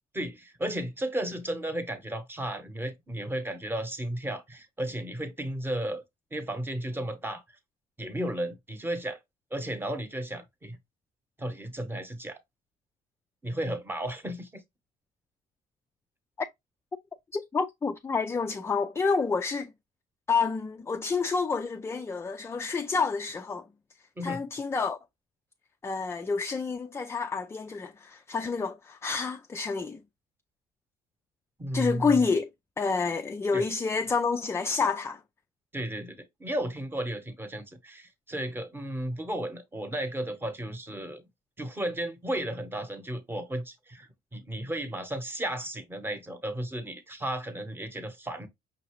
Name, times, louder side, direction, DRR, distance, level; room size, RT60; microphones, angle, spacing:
voice 1, 0.1-6.0 6.3-7.4 8.0-9.2 9.5-10.8 11.4-12.4 13.4-14.6 24.2-24.4 31.6-32.3 33.5-33.6 35.7-41.2 41.6-48.5, right 1 dB, 10° right, 0.9 m, -34 dB
voice 2, 17.3-19.7 20.3-23.6 24.2-25.0 25.8-30.0 31.7-32.5 32.8-35.2, left 4 dB, 15° left, 0.3 m, -28 dB
5.7 x 2.6 x 3.0 m
cardioid pair, 110°, 17 cm